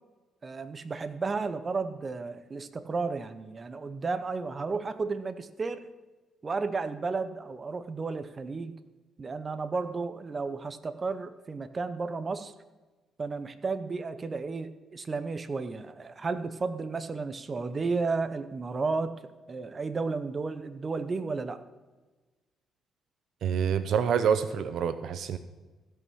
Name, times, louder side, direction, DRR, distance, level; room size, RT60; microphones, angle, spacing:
voice 1, 0.4-5.9 6.4-8.7 9.2-12.5 13.2-19.1 19.5-21.6, right 4 dB, 35° right, 12 dB, 0.8 m, -33 dB
voice 2, 23.4-25.4, right 7 dB, 70° right, 12 dB, 0.6 m, -27 dB
16.0 x 5.7 x 6.3 m, 1.2 s
cardioid pair, 90°, 0 cm